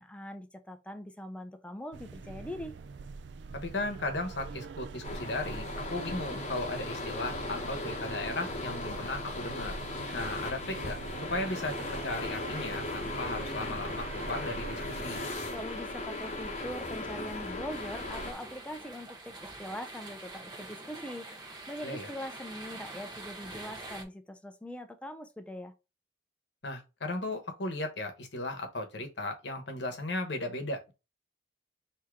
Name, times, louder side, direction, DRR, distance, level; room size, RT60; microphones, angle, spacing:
voice 1, 0.0-2.8 15.5-25.7, equal, 5° left, 0.5 m, -42 dB
sound 1, 1.9-15.3, right 4 dB, 70° right, 0.4 m, -44 dB
voice 2, 3.5-9.7 10.1-11.0 11.3-11.8 12.0-15.2 21.8-22.1 26.6-30.9, left 2 dB, 70° left, 1.0 m, -36 dB
sound 2, 5.0-18.3, left 2 dB, 40° left, 1.1 m, -37 dB
sound 3, 17.7-24.0, right 2 dB, 25° right, 0.8 m, -45 dB
3.6 x 2.8 x 4.6 m
head